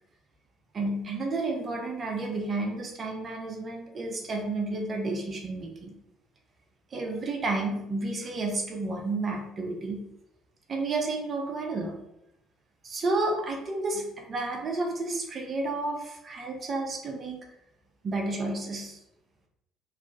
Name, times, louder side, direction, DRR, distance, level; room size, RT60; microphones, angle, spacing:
voice 1, 0.7-5.9 6.9-10.1 10.7-12.0 12.8-17.5 18.0-19.0, right 2 dB, 40° right, 2 dB, 0.8 m, -31 dB
3.2 x 2.4 x 3.8 m, 0.81 s
figure-of-eight pair, 50°, 0 cm